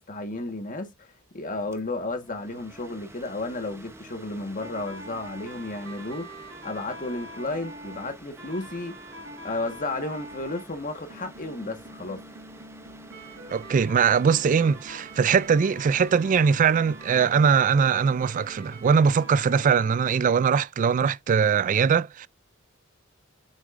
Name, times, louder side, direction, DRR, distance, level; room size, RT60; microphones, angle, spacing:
voice 1, 0.0-9.0 9.4-12.2, left 2 dB, 40° left, 1.5 m, -33 dB
sound 1, 1.6-19.7, right 1 dB, 15° right, 0.9 m, -49 dB
sound 2, 4.6-10.7 11.1-20.1, right 1 dB, 60° right, 3.5 m, -44 dB
voice 2, 13.5-22.3, right 6 dB, 40° right, 0.3 m, -21 dB
7.3 x 6.3 x 2.5 m
head